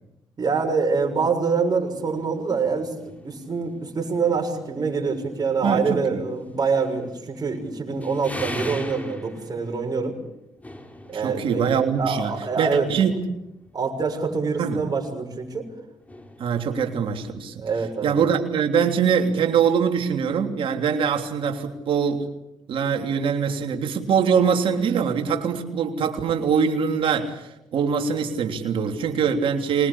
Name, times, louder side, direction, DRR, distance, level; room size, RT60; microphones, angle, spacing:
voice 1, 0.4-10.2 11.1-11.6 12.0-12.9 13.7-15.7 17.6-18.2, right 5 dB, 45° right, 1 dB, 6.7 m, -25 dB
sound 1, 1.9-17.8, left 1 dB, 15° left, 4.5 m, -43 dB
voice 2, 5.6-6.2 11.1-13.2 14.6-14.8 16.4-17.7 18.0-22.3 22.7-29.9, right 6 dB, 70° right, 4 dB, 3.3 m, -23 dB
25.5 x 20.5 x 8.7 m, 0.86 s
cardioid pair, 70°, 9 cm